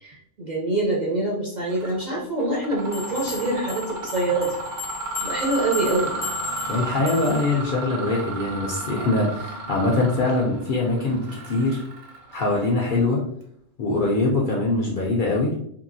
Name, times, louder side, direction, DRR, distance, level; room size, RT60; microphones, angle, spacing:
voice 1, 0.0-4.6 5.2-6.2, right 2 dB, 50° right, -4 dB, 0.6 m, -25 dB
Mechanisms, 1.7-2.0 2.4-13.0, right 3 dB, 90° right, 1.1 m, -33 dB
sound 1, 2.9-7.6, left 7 dB, 40° left, 0.8 m, -36 dB
voice 2, 6.7-11.8 12.3-13.2 13.8-15.5, left 2 dB, 60° left, -3 dB, 0.5 m, -23 dB
2.7 x 2.7 x 2.6 m, 0.72 s
omnidirectional pair, 1.3 m